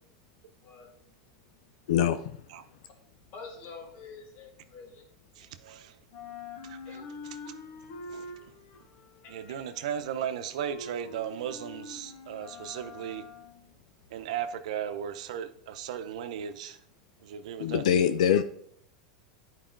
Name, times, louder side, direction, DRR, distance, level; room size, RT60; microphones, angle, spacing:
voice 1, 0.5-1.9 2.9-5.0 5.3-5.7 6.2-6.5 6.8-9.6 12.2-12.3 13.9-14.2, left 4 dB, 50° left, 1 dB, 2.2 m, -51 dB
voice 2, 1.9-2.2 17.6-18.4, left 9 dB, 80° left, 11 dB, 0.4 m, -23 dB
sound 1, 2.9-5.7 6.0-14.2, left 2 dB, 65° left, 1.3 m, -46 dB
voice 3, 5.4-6.0 6.6-6.8 7.5-7.6 8.1-8.3 9.3-13.2 14.1-16.8 17.2-17.8, right 9 dB, 75° right, 10 dB, 0.7 m, -36 dB
10.0 x 4.9 x 3.8 m, 0.67 s
supercardioid pair, 130°, 4 cm